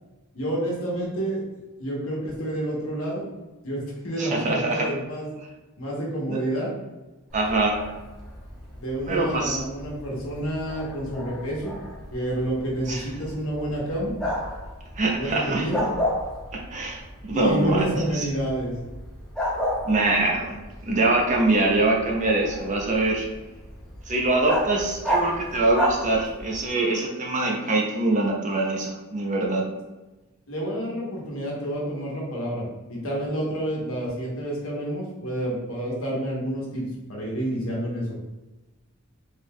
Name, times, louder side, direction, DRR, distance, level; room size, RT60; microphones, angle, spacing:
voice 1, 0.3-1.4 1.8-3.2 3.6-5.3 5.8-6.7 8.8-11.7 12.1-14.2 15.2-15.9 17.3-18.7 30.5-36.8 37.1-38.2, right 1 dB, 70° left, -4 dB, 1.2 m, -29 dB
voice 2, 4.2-4.9 6.3-6.4 7.3-7.8 9.1-9.6 12.9-13.0 15.0-15.7 16.5-18.3 19.8-20.5 20.9-23.3 24.1-29.6, right 2 dB, 35° right, 0 dB, 0.6 m, -24 dB
Bark, 7.3-26.7, equal, 5° left, 0.8 m, -33 dB
3.6 x 2.3 x 3.5 m, 1.1 s
head